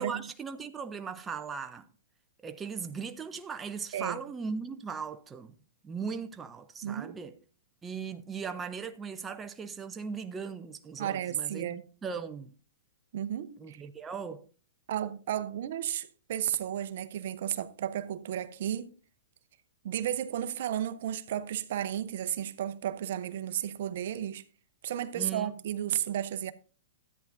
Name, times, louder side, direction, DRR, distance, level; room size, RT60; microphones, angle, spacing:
voice 1, 0.0-1.9 2.4-5.5 5.8-7.4 7.8-12.5 13.6-14.5 25.1-25.5, right 6 dB, 15° right, 0.6 m, -38 dB
voice 2, 6.8-7.2 11.0-11.8 13.1-13.8 14.9-18.9 19.8-24.4 24.8-26.5, right 11 dB, 60° right, 0.8 m, -33 dB
13.5 x 9.5 x 2.6 m
hypercardioid pair, 130°, 0 cm